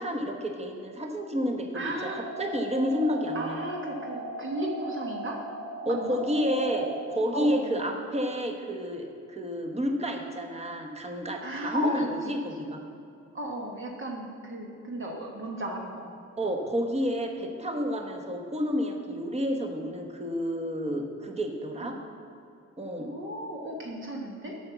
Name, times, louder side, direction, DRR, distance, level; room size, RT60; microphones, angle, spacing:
voice 1, 0.0-1.9 2.4-3.6 5.8-12.8 16.4-22.0 22.8-23.1, equal, 20° right, 4 dB, 1.2 m, -30 dB
voice 2, 1.7-2.3 3.3-5.4 5.9-6.2 7.3-7.8 11.4-12.6 13.3-16.1 21.8-22.0 23.0-24.5, right 1 dB, 40° right, 0 dB, 1.3 m, -35 dB
sound 1, 2.0-7.0, right 2 dB, 90° right, 2.1 m, -38 dB
8.0 x 6.1 x 6.9 m, 2.5 s
cardioid pair, 90°, 30 cm